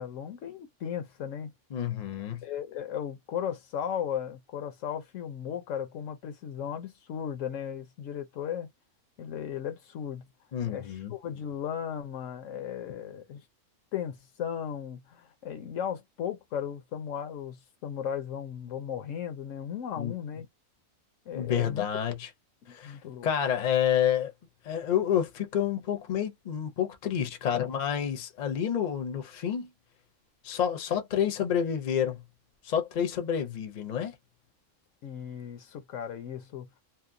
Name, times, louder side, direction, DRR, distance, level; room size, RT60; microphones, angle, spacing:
voice 1, 0.0-1.5 2.4-8.7 9.2-10.2 10.7-13.4 13.9-20.5 21.3-21.9 22.7-23.3 35.0-36.7, left 8 dB, 80° left, 1.0 m, -36 dB
voice 2, 1.7-2.4 10.5-11.1 20.0-20.1 21.3-22.3 22.7-23.0 23.2-24.3 24.6-29.7 30.4-32.2 32.6-34.1, left 9 dB, 45° left, 0.6 m, -29 dB
2.8 x 2.1 x 2.5 m
omnidirectional pair, 1.3 m